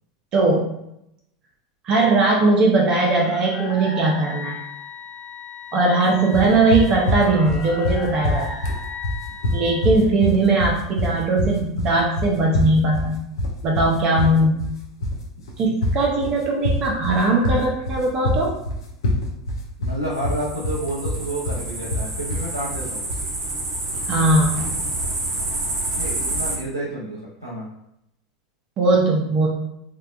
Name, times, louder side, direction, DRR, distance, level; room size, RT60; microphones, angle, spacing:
voice 1, 0.3-0.8 1.8-4.6 5.7-8.4 9.5-13.2 13.6-14.6 15.6-18.5 24.1-24.7 28.8-29.5, right 2 dB, 35° right, -1 dB, 0.6 m, -19 dB
sound 1, 3.1-9.9, left 4 dB, 25° left, 0.9 m, -36 dB
sound 2, 6.3-23.3, left 1 dB, 75° left, 0.6 m, -25 dB
voice 2, 19.8-23.0 25.9-27.7, right 1 dB, 90° right, -5 dB, 0.6 m, -30 dB
sound 3, 20.1-26.6, right 2 dB, 55° right, 1.0 m, -28 dB
3.4 x 2.2 x 2.4 m, 0.80 s
figure-of-eight pair, 85°, 2 cm